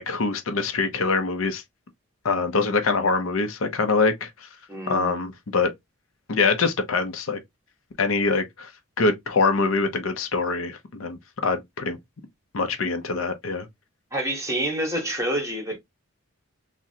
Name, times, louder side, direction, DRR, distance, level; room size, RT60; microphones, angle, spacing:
voice 1, 0.0-1.6 2.2-4.3 4.9-5.7 6.3-7.4 8.0-8.7 9.0-12.0 12.5-13.7, left 4 dB, 65° left, 0.6 m, -24 dB
voice 2, 4.7-5.2 14.1-15.8, right 1 dB, 15° right, 1.0 m, -27 dB
3.7 x 2.1 x 2.6 m
head